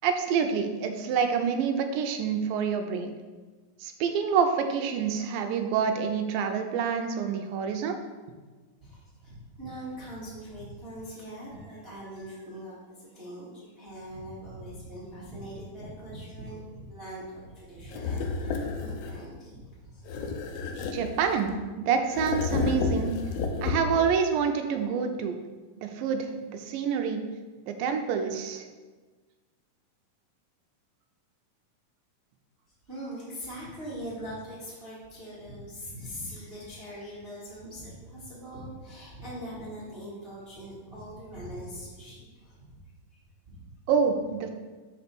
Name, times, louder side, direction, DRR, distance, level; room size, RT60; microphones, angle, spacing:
voice 1, 0.0-3.1 3.8-8.0 20.9-21.5 21.9-23.2 23.6-25.4 25.8-27.2 27.7-28.7 43.9-44.5, right 6 dB, 85° right, 6 dB, 2.3 m, -27 dB
voice 2, 8.8-20.4 32.8-42.6 43.1-43.7, equal, 30° right, -9 dB, 1.0 m, -42 dB
sound 1, 17.9-19.3 20.1-21.6 22.1-24.1, left 4 dB, 85° left, 2.5 m, -31 dB
5.8 x 4.3 x 6.0 m, 1.3 s
omnidirectional pair, 4.1 m